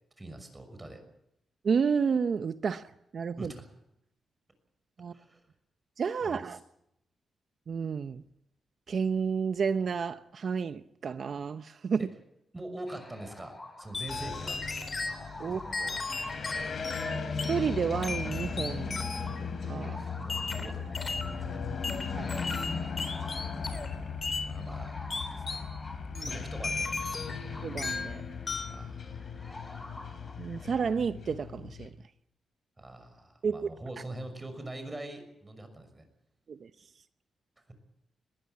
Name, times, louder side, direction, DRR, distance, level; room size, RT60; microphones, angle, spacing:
voice 1, 0.2-1.0 2.7-2.8 3.4-3.7 5.1-5.4 6.2-6.6 12.0-12.1 12.5-14.6 15.4-16.0 20.0-21.7 23.0-23.1 24.4-25.0 25.3-25.6 26.2-26.9 28.7-29.6 32.8-36.0, right 1 dB, 20° right, 6.1 m, -44 dB
voice 2, 1.6-2.8 3.1-3.5 5.0-5.1 6.0-6.6 7.7-8.2 8.9-12.0 15.4-15.6 17.5-19.0 19.6-20.0 22.1-22.3 26.1-26.3 27.6-28.2 30.4-31.9 33.4-33.7 36.5-36.7, right 6 dB, 60° right, 0.7 m, -31 dB
sound 1, 12.9-30.9, left 2 dB, 20° left, 3.2 m, -50 dB
sound 2, 13.9-15.2 15.7-17.6 18.0-19.4 20.3-21.4 21.8-23.9 24.2-24.5 25.1-25.7 26.1-27.5 27.8-28.1 28.5-28.8, left 3 dB, 40° left, 3.7 m, -36 dB
sound 3, 14.1-31.9, left 5 dB, 55° left, 4.0 m, -37 dB
21.0 x 15.5 x 9.7 m
cardioid pair, 85°, 0 cm